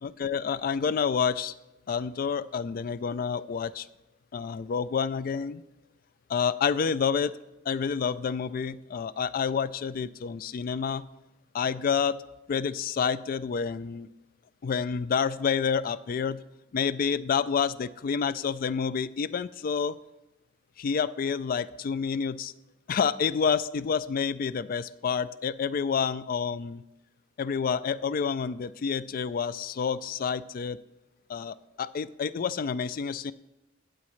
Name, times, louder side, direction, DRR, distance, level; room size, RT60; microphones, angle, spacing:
voice 1, 0.0-1.5 1.9-3.9 4.3-5.6 6.3-7.4 7.7-11.1 11.5-12.2 12.5-14.1 14.6-16.4 16.7-20.0 20.8-22.5 22.9-26.8 27.4-30.8 31.3-33.3, left 6 dB, 50° left, 17 dB, 0.3 m, -28 dB
15.5 x 8.2 x 3.2 m, 0.96 s
head